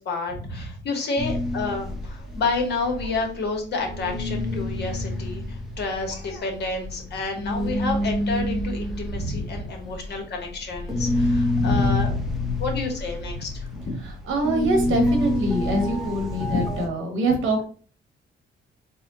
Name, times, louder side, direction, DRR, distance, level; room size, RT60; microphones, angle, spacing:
voice 1, 0.0-12.1 12.6-14.0 16.5-16.6, left 3 dB, 60° left, 1 dB, 1.4 m, -30 dB
sound 1, 1.2-3.5 3.8-16.9, left 1 dB, ahead, 0.9 m, -27 dB
voice 2, 9.1-9.5 11.6-12.0 14.3-17.6, right 1 dB, 80° right, 3 dB, 1.4 m, -25 dB
4.2 x 2.3 x 4.0 m, 0.42 s
cardioid pair, 90°, 20 cm